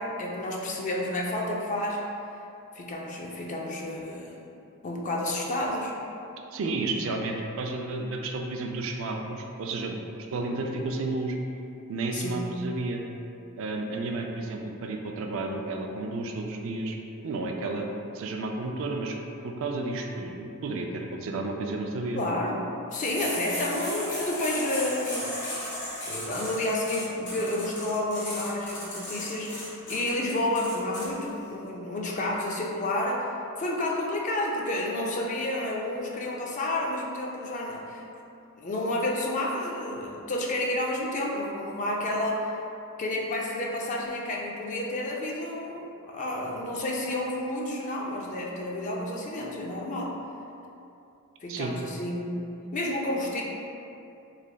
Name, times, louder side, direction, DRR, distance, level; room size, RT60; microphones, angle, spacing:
voice 1, 0.0-2.0 2.7-4.4 4.8-5.9 12.1-12.5 22.1-25.4 26.0-33.3 33.6-38.0 38.6-42.5 43.0-50.1 51.4-53.4, left 1 dB, 35° left, -2 dB, 0.4 m, -30 dB
voice 2, 6.5-10.0 10.3-11.4 11.9-13.0 13.6-17.0 17.2-19.2 19.4-22.2 51.5-51.7, right 2 dB, 60° right, 2 dB, 0.3 m, -32 dB
sound 1, 22.9-31.1, left 1 dB, 55° left, 1.0 m, -35 dB
3.8 x 3.2 x 2.2 m, 2.7 s
head